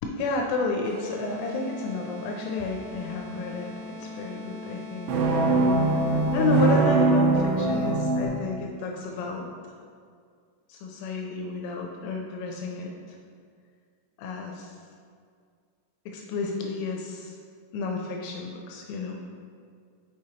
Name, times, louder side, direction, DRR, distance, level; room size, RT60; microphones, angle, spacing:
voice 1, 0.0-5.4 5.9-6.0 6.3-9.5 10.7-13.2 14.2-14.7 16.1-17.4 17.7-19.2, left 4 dB, 85° left, 1 dB, 3.0 m, -31 dB
sound 1, 0.8-6.8, left 2 dB, 65° right, 3.1 m, -41 dB
sound 2, 5.1-8.3, right 3 dB, 85° right, 2.8 m, -22 dB
6.5 x 6.3 x 2.8 m, 2.2 s
omnidirectional pair, 6.0 m